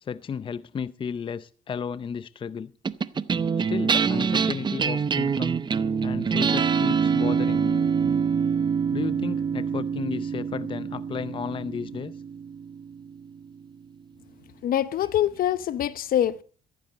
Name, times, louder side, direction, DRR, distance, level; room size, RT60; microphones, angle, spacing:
voice 1, 0.0-2.7 3.7-5.6 6.0-7.9 8.9-12.1, left 7 dB, 30° left, 0.6 m, -33 dB
sound 1, 2.8-13.4, right 6 dB, 25° right, 0.7 m, -25 dB
voice 2, 14.6-16.4, left 11 dB, 60° left, 0.9 m, -24 dB
15.5 x 15.0 x 4.0 m
cardioid pair, 110°, 17 cm